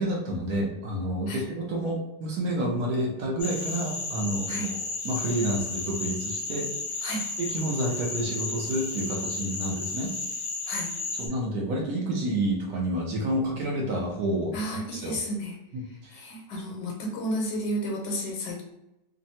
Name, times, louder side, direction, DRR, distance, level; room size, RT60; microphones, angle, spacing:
voice 1, 0.0-7.0 7.4-10.1 11.2-15.2 15.7-16.2, right 1 dB, 65° right, -1 dB, 1.1 m, -29 dB
sound 1, 3.4-11.3, left 3 dB, 55° left, 0.8 m, -33 dB
voice 2, 14.5-15.5 16.1-18.6, equal, 80° left, -1 dB, 1.4 m, -32 dB
3.3 x 2.0 x 2.7 m, 0.91 s
omnidirectional pair, 1.9 m